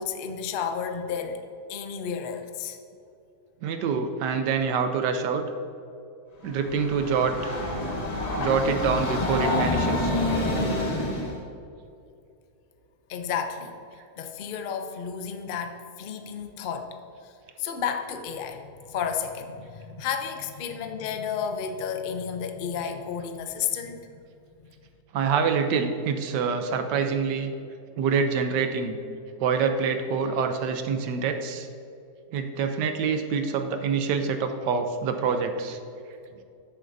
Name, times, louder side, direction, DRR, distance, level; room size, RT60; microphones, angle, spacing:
voice 1, 0.0-1.4 1.7-2.8 13.1-13.8 14.2-17.0 17.2-17.3 17.6-24.1, left 7 dB, 85° left, 6 dB, 0.4 m, -32 dB
voice 2, 3.6-5.4 6.4-7.6 8.4-10.1 25.1-27.5 28.0-29.0 29.4-31.7 32.3-35.8, right 5 dB, 90° right, 7 dB, 1.4 m, -26 dB
Train, 6.5-11.4, left 1 dB, 30° left, 0.9 m, -27 dB
13.5 x 7.4 x 2.6 m, 2.6 s
omnidirectional pair, 1.8 m